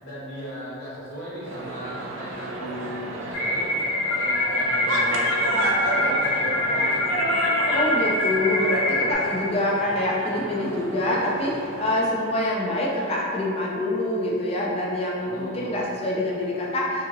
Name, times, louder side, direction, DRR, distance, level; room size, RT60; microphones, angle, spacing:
voice 1, 0.0-3.7 4.0-7.7 15.2-15.8, equal, 55° left, -11 dB, 1.2 m, -38 dB
sound 1, 1.5-12.1, right 1 dB, 70° right, 0.4 m, -31 dB
sound 2, 3.3-9.1, left 1 dB, 80° left, 0.8 m, -24 dB
voice 2, 7.6-17.1, left 1 dB, 30° left, -3 dB, 0.4 m, -25 dB
2.7 x 2.7 x 2.5 m, 2.4 s
head